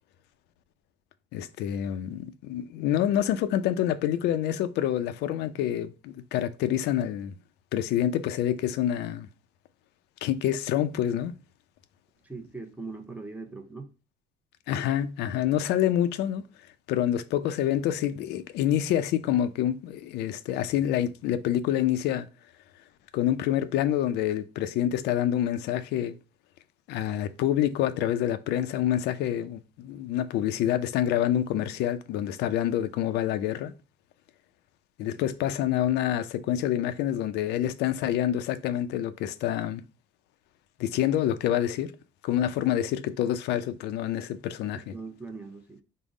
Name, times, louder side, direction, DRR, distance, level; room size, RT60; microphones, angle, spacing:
voice 1, 1.3-7.3 7.7-9.3 10.2-11.3 14.7-16.5 16.9-22.3 23.1-26.2 26.9-33.7 35.0-39.8 40.8-42.0 42.2-44.8, left 11 dB, 80° left, 0.4 m, -27 dB
voice 2, 12.2-13.9 44.7-45.8, right 3 dB, 10° right, 0.6 m, -40 dB
3.6 x 2.0 x 3.6 m
cardioid pair, 110°, 17 cm